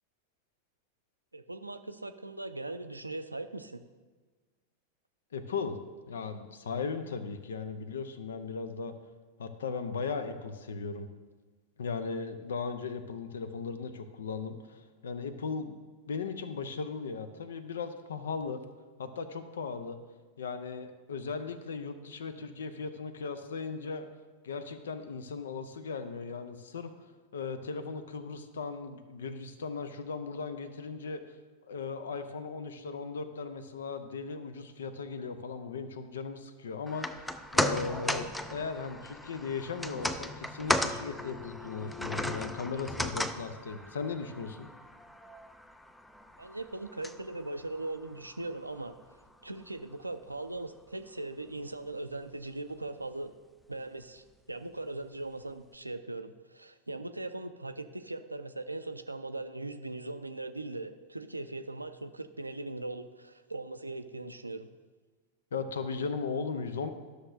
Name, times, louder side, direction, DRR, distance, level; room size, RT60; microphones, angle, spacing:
voice 1, 1.3-3.8 46.4-49.0 49.4-53.3 53.7-64.7, right 2 dB, 85° right, 10 dB, 0.4 m, -40 dB
voice 2, 5.3-5.8 6.1-8.9 9.4-11.1 11.8-15.8 16.1-18.6 19.0-20.0 20.4-24.1 24.4-31.4 31.6-44.7 65.5-66.9, left 5 dB, 65° left, 10 dB, 0.6 m, -37 dB
sound 1, 36.9-49.2 49.6-49.7, left 1 dB, 5° left, 0.4 m, -36 dB
12.5 x 6.5 x 2.6 m, 1.4 s
figure-of-eight pair, 90°, 0 cm